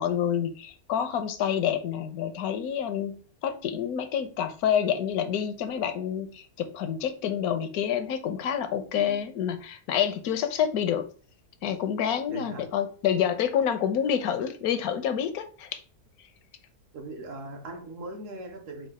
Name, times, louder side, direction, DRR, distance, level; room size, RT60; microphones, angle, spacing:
voice 1, 0.0-11.0 11.6-15.8, left 9 dB, 75° left, 1.1 m, -28 dB
voice 2, 8.9-9.3 12.3-12.7 16.9-18.9, right 2 dB, 60° right, 1.3 m, -40 dB
4.7 x 2.3 x 4.8 m
omnidirectional pair, 1.6 m